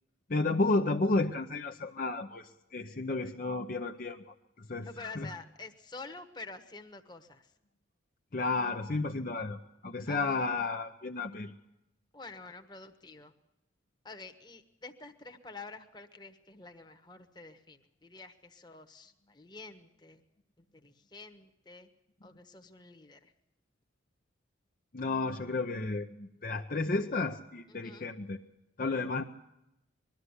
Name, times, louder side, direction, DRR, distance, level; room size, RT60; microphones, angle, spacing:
voice 1, 0.3-4.2 4.6-5.3 8.3-11.5 24.9-28.4 28.8-29.2, left 3 dB, 45° left, 3 dB, 0.7 m, -32 dB
voice 2, 4.9-7.5 10.1-10.4 12.1-13.3 14.0-20.2 20.7-21.9 22.2-23.3 27.7-28.1, left 3 dB, 20° left, 6 dB, 1.3 m, -48 dB
21.5 x 13.0 x 9.7 m, 0.90 s
head